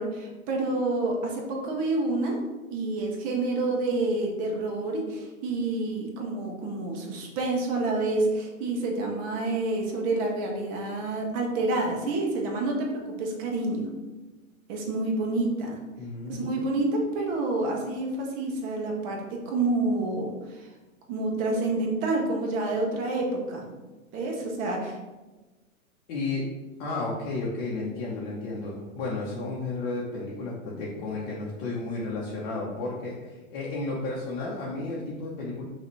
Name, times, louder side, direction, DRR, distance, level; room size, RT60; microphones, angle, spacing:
voice 1, 0.0-2.4 2.7-13.8 14.7-15.8 16.3-20.3 21.1-23.6 24.1-25.0, right 2 dB, 20° right, 0 dB, 0.6 m, -28 dB
voice 2, 16.0-16.5 24.1-24.4 26.1-26.5 26.8-35.6, left 3 dB, 35° left, -4 dB, 0.8 m, -33 dB
5.7 x 2.4 x 3.1 m, 1.2 s
hypercardioid pair, 135°, 43 cm